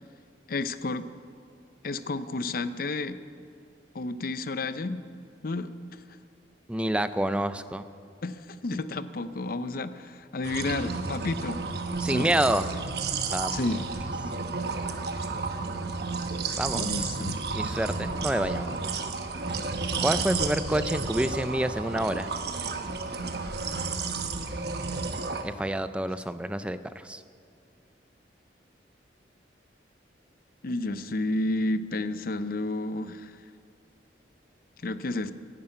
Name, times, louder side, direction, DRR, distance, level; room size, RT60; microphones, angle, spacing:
voice 1, 0.5-1.1 1.8-3.2 3.9-5.0 5.4-5.7 8.2-11.6 12.1-12.3 13.5-13.9 16.7-17.4 30.6-33.3 34.8-35.3, left 2 dB, 50° left, 13 dB, 0.6 m, -31 dB
voice 2, 6.7-7.9 12.0-12.7 13.3-13.7 16.5-17.1 17.5-18.7 20.0-22.3 25.4-27.2, right 1 dB, 5° right, 12 dB, 0.4 m, -28 dB
sound 1, 10.4-25.4, right 4 dB, 60° right, 1.0 m, -32 dB
11.5 x 11.0 x 8.9 m, 2.4 s
head